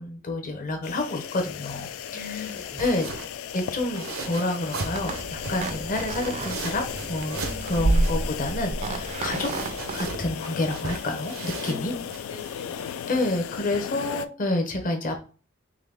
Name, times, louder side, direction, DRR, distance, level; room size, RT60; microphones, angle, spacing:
voice 1, 0.0-2.4 2.8-3.1 3.5-9.5 9.9-11.9 13.1-15.2, left 2 dB, 40° left, 4 dB, 0.7 m, -29 dB
sound 1, 0.8-14.3, left 9 dB, 90° left, 0.3 m, -36 dB
sound 2, 1.6-14.3, right 3 dB, 90° right, 0.7 m, -39 dB
voice 2, 2.1-3.0 7.4-7.9 11.6-13.3, left 4 dB, 60° left, 1 dB, 1.5 m, -41 dB
sound 3, 4.9-10.1, right 2 dB, 35° right, 0.4 m, -29 dB
3.8 x 3.0 x 3.4 m, 0.38 s
head